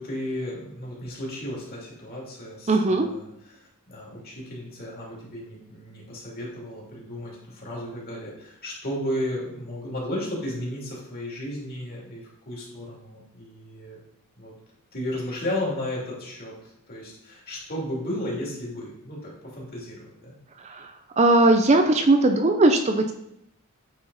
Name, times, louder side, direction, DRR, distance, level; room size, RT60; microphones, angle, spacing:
voice 1, 0.0-3.3 3.5-14.0 14.4-14.5 14.9-16.5 16.9-19.2 19.5-20.4, left 1 dB, 45° left, -3 dB, 2.7 m, -34 dB
voice 2, 2.7-3.1 20.6-20.9 21.2-23.1, right 2 dB, 30° right, 6 dB, 0.5 m, -19 dB
9.0 x 4.3 x 4.1 m, 0.79 s
head